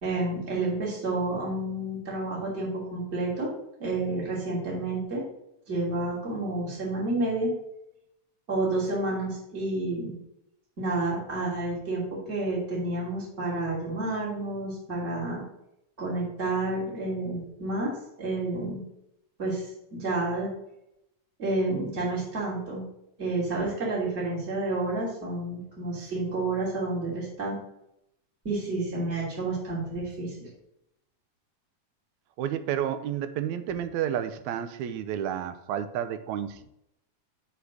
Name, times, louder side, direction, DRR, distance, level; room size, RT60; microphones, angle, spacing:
voice 1, 0.0-3.5 3.8-5.2 5.7-7.5 8.5-10.1 10.8-15.4 16.0-17.9 18.2-18.8 19.4-19.6 19.9-20.5 21.4-22.8 23.2-27.6 28.4-30.5, right 2 dB, 20° right, -5 dB, 2.9 m, -30 dB
voice 2, 32.4-36.6, right 10 dB, 80° right, 10 dB, 2.0 m, -31 dB
6.0 x 5.8 x 6.3 m, 0.81 s
omnidirectional pair, 3.4 m